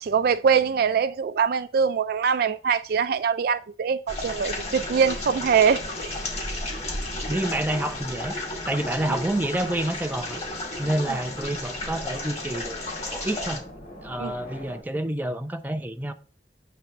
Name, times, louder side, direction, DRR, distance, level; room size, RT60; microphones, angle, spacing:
voice 1, 0.0-6.2 14.2-14.3, right 6 dB, 60° right, 0.4 m, -23 dB
sound 1, 4.1-13.6, left 2 dB, 40° left, 2.1 m, -33 dB
sound 2, 4.2-14.8, equal, 55° left, 3.8 m, -43 dB
voice 2, 7.3-8.4 8.7-10.4 10.8-12.8 13.1-13.6 14.0-16.1, right 1 dB, 10° right, 0.6 m, -28 dB
8.1 x 3.4 x 5.8 m
head